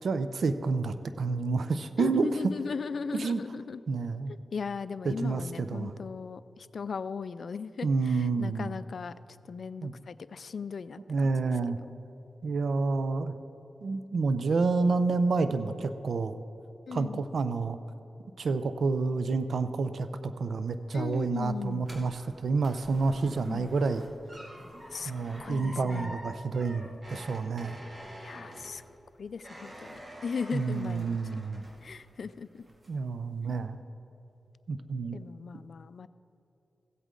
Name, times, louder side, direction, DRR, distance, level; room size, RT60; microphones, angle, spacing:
voice 1, 0.0-2.3 3.1-3.4 3.9-4.3 5.0-5.9 7.8-8.7 9.8-9.9 11.1-11.8 12.4-13.3 13.8-16.3 16.9-17.8 18.4-24.0 25.1-27.8 30.5-31.6 32.9-33.8 34.7-35.2, right 4 dB, 75° right, 11 dB, 0.5 m, -29 dB
voice 2, 2.0-3.8 4.3-9.1 9.5-11.5 16.9-17.2 20.9-21.9 23.5-23.7 24.9-25.1 25.4-26.1 28.2-28.8 29.2-31.4 31.8-32.6 35.1-36.1, left 5 dB, 70° left, 15 dB, 0.3 m, -37 dB
sound 1, 20.7-32.2 32.6-33.1 33.5-33.6, equal, 40° right, 2.2 m, -47 dB
15.5 x 8.2 x 3.7 m, 2.9 s
cardioid pair, 65°, 0 cm